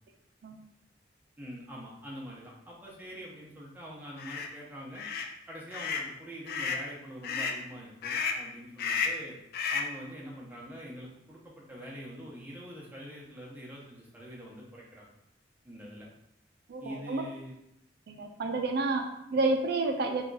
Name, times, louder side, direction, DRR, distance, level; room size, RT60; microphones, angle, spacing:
voice 1, 1.4-5.0 5.5-9.4 9.7-15.1 15.6-16.1 16.8-17.5, equal, 10° right, -5 dB, 0.7 m, -44 dB
sound 1, 4.2-4.5 5.0-5.3 5.7-6.1 6.5-6.9 7.2-7.6 8.0-8.5 8.8-9.2 9.5-10.0, left 5 dB, 55° left, 0.3 m, -32 dB
voice 2, 16.7-17.2 18.1-20.2, right 3 dB, 60° right, 4 dB, 0.4 m, -30 dB
2.7 x 2.3 x 3.8 m, 0.82 s
head